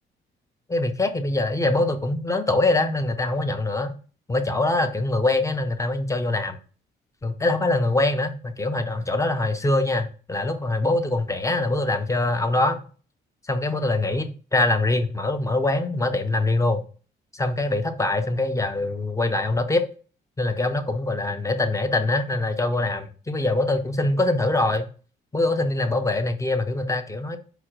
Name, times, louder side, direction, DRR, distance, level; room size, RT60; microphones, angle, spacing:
voice 1, 0.7-4.0 4.3-6.6 7.2-12.8 13.5-16.8 17.3-19.8 20.4-24.9 25.3-27.4, left 2 dB, 15° left, 0.6 m, -23 dB
4.8 x 2.1 x 4.6 m
cardioid pair, 90°, 20 cm